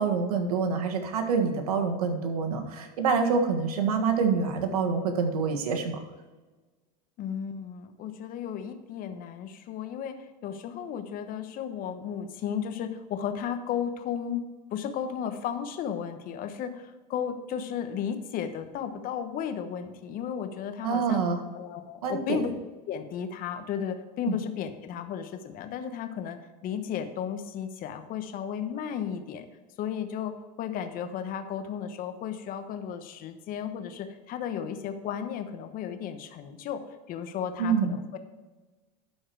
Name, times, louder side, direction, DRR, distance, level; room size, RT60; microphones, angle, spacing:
voice 1, 0.0-6.0 20.8-21.4 22.0-22.4 24.2-24.4 37.6-37.9, right 5 dB, 90° right, 4 dB, 1.5 m, -26 dB
voice 2, 7.2-14.4 14.7-21.2 21.5-22.5 22.9-29.5 29.8-36.8 37.1-38.2, left 8 dB, 50° left, 8 dB, 1.2 m, -34 dB
12.0 x 4.8 x 4.7 m, 1.2 s
supercardioid pair, 100°, 19 cm